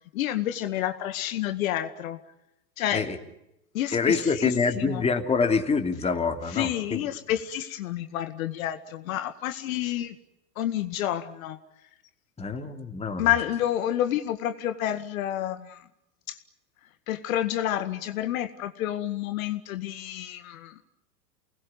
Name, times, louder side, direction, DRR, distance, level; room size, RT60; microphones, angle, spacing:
voice 1, 0.1-2.2 2.8-3.1 3.7-5.0 6.5-10.2 10.6-11.6 13.2-15.9 16.3-16.4 17.1-20.7, left 12 dB, 55° left, 9 dB, 2.0 m, -29 dB
voice 2, 3.9-7.0 12.4-13.4, left 4 dB, 15° left, 5 dB, 3.0 m, -26 dB
29.0 x 21.0 x 9.7 m, 0.87 s
hypercardioid pair, 100°, 47 cm